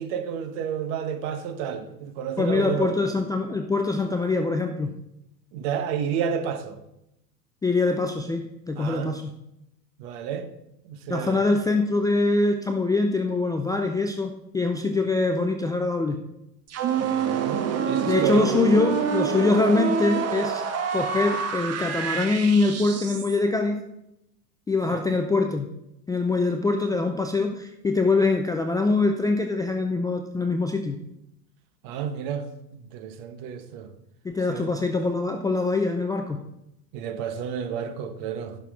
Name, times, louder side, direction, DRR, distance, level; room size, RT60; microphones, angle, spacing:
voice 1, 0.0-2.9 5.5-6.8 8.8-9.1 10.0-10.5 10.8-11.4 14.8-14.9 17.0-18.6 24.9-25.1 31.8-32.5 32.7-33.9 34.5-34.7 36.9-38.6, right 8 dB, 50° right, 1.4 m, -31 dB
voice 2, 2.4-4.9 7.6-9.2 11.1-16.2 18.0-20.6 20.9-23.8 24.7-25.7 26.1-31.0 34.2-36.4, left 3 dB, 10° left, 0.4 m, -24 dB
sound 1, 16.7-23.4, right 6 dB, 30° right, 1.3 m, -27 dB
15.5 x 6.0 x 3.7 m
hypercardioid pair, 90°, 49 cm